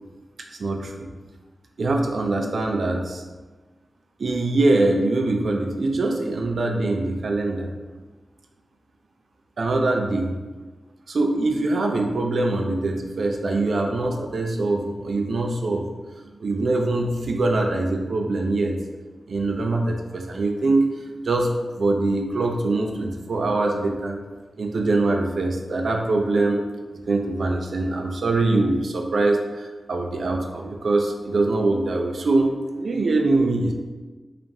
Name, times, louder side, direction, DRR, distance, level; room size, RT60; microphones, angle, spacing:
voice 1, 0.6-1.1 1.8-3.2 4.2-7.7 9.6-10.3 11.1-15.9 16.2-18.8 19.3-20.9 21.2-24.2 24.6-26.6 27.1-33.7, right 2 dB, 70° right, 2 dB, 0.4 m, -23 dB
4.0 x 2.5 x 3.5 m, 1.3 s
wide cardioid pair, 125°, 0 cm